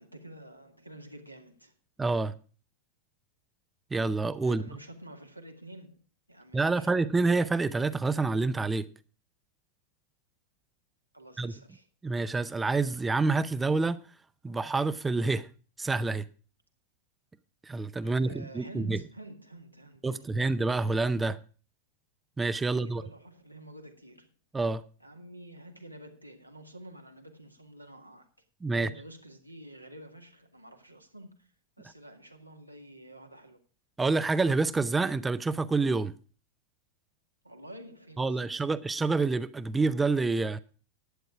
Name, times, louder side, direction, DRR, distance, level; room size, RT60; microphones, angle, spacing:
voice 1, 0.0-1.7 4.4-6.0 6.3-6.9 11.1-11.9 18.0-20.3 22.6-24.3 25.0-28.3 28.7-31.5 31.8-33.6 37.4-38.7, right 1 dB, 90° right, 1.9 m, -49 dB
voice 2, 2.0-2.3 3.9-4.6 6.5-8.8 11.4-11.5 12.0-14.0 14.4-15.5 15.8-16.2 17.7-19.0 20.0-21.4 22.4-23.0 24.5-24.8 28.6-28.9 34.0-36.1 38.2-40.6, right 3 dB, 10° right, 0.6 m, -27 dB
11.5 x 9.2 x 4.9 m
figure-of-eight pair, 90°, 0 cm